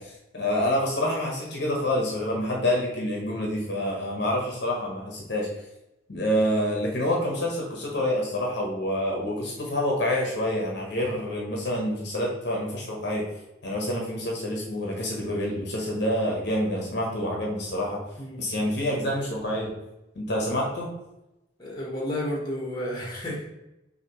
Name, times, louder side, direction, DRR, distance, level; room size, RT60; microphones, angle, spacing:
voice 1, 0.3-5.5 6.1-13.2 13.6-18.0 18.4-19.7 20.1-20.9, left 1 dB, 60° left, -2 dB, 1.0 m, -27 dB
voice 2, 21.6-23.5, left 1 dB, 20° left, -3 dB, 1.3 m, -31 dB
5.9 x 2.9 x 3.0 m, 0.92 s
head